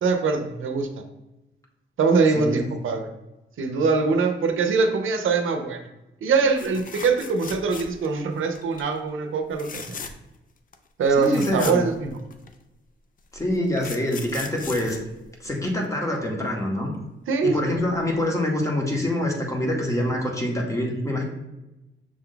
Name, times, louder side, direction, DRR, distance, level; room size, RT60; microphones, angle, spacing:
voice 1, 0.0-0.9 2.0-3.1 3.6-5.8 6.2-10.0 11.0-12.2 17.3-17.7, right 4 dB, 80° right, 5 dB, 0.6 m, -23 dB
voice 2, 2.3-2.7 11.2-11.8 13.3-15.0 15.4-16.9 17.4-21.2, left 1 dB, 15° left, 0 dB, 0.8 m, -25 dB
sound 1, 6.6-8.2 8.5-8.9 9.5-10.4 10.7-10.8 11.0-12.5 13.3-15.9 17.8-17.9 18.2-18.3, left 5 dB, 45° left, 0.4 m, -38 dB
6.3 x 2.3 x 3.8 m, 0.99 s
wide cardioid pair, 155°, 21 cm